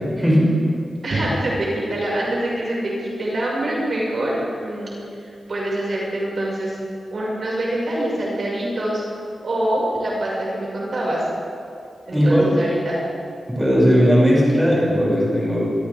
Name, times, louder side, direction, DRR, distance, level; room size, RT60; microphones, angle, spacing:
voice 1, 1.0-4.9 5.2-6.8 7.1-9.0 9.4-11.2 12.1-13.0, right 1 dB, 45° right, -5 dB, 6.3 m, -25 dB
voice 2, 12.1-12.5 13.5-15.6, equal, 5° right, -6 dB, 7.2 m, -17 dB
27.0 x 25.5 x 3.7 m, 2.5 s
wide cardioid pair, 170°, 0 cm